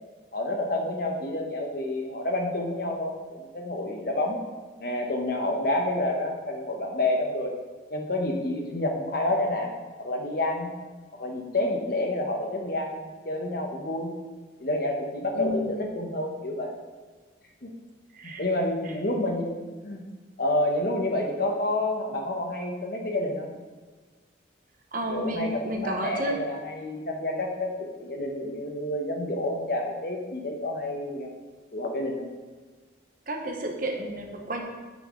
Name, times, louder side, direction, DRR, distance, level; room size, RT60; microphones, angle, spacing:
voice 1, 0.3-4.4 4.8-7.5 7.9-9.7 10.0-10.7 11.2-14.1 14.6-16.8 17.6-17.7 18.4-19.6 19.8-20.0 20.4-23.5 25.1-31.3 31.7-32.3, left 1 dB, 50° left, 1 dB, 1.0 m, -29 dB
voice 2, 15.3-15.9 18.1-18.4 18.8-18.9 24.9-26.4 33.3-34.6, equal, 45° right, 2 dB, 1.0 m, -31 dB
8.4 x 5.6 x 3.8 m, 1.4 s
head